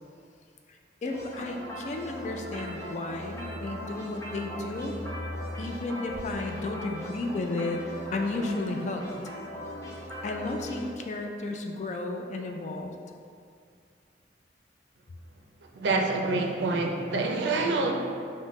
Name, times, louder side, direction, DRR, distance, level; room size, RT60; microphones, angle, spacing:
voice 1, 0.7-5.0 5.6-7.8 8.1-9.0 10.2-12.9, left 2 dB, 40° left, 3 dB, 0.3 m, -33 dB
sound 1, 1.0-10.9, equal, 15° left, 0.7 m, -39 dB
voice 2, 15.7-17.9, right 3 dB, 75° right, 1 dB, 0.4 m, -26 dB
5.5 x 2.1 x 3.0 m, 2.4 s
head